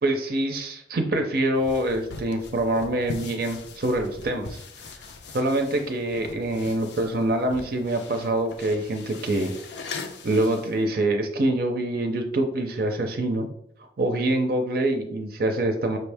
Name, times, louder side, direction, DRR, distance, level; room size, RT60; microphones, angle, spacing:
voice 1, 0.0-4.6 5.3-9.5 10.2-13.5 14.0-16.0, right 1 dB, 55° right, 5 dB, 0.5 m, -25 dB
sound 1, 1.5-10.8, left 4 dB, 70° left, 0.5 m, -41 dB
5.5 x 2.6 x 3.4 m, 0.74 s
head